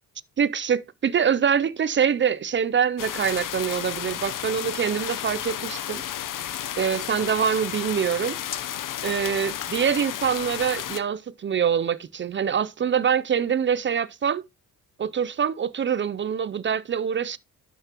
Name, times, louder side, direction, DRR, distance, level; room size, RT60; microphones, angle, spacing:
voice 1, 0.4-6.0 6.8-8.7 9.0-14.4 15.0-17.4, right 7 dB, 35° right, 0.4 m, -25 dB
sound 1, 3.0-11.0, left 11 dB, 60° left, 0.8 m, -32 dB
11.5 x 6.7 x 2.9 m
cardioid pair, 85°, 35 cm